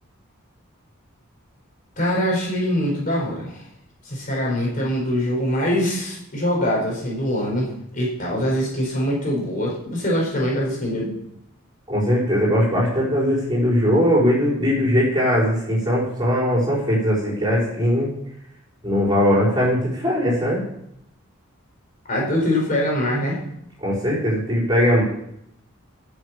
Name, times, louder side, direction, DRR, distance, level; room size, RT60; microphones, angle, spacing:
voice 1, 2.0-3.6 4.0-11.1 22.1-23.4, equal, 40° left, -2 dB, 4.6 m, -23 dB
voice 2, 11.9-18.1 18.8-20.6 23.8-25.0, equal, 20° right, -5 dB, 5.6 m, -20 dB
11.0 x 7.4 x 8.6 m, 0.75 s
head